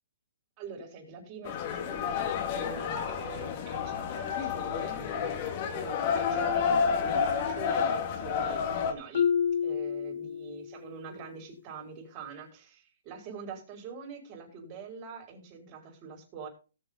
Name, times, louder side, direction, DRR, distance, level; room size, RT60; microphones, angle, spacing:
voice 1, 0.6-9.3 9.6-16.5, right 5 dB, 30° right, 2 dB, 5.6 m, -45 dB
sound 1, 1.5-8.9, left 6 dB, 35° left, 2.5 m, -30 dB
Marimba xylophone, 9.1-10.9, left 7 dB, 55° left, 0.9 m, -29 dB
18.0 x 7.7 x 4.0 m, 0.33 s
hypercardioid pair, 155°, 0 cm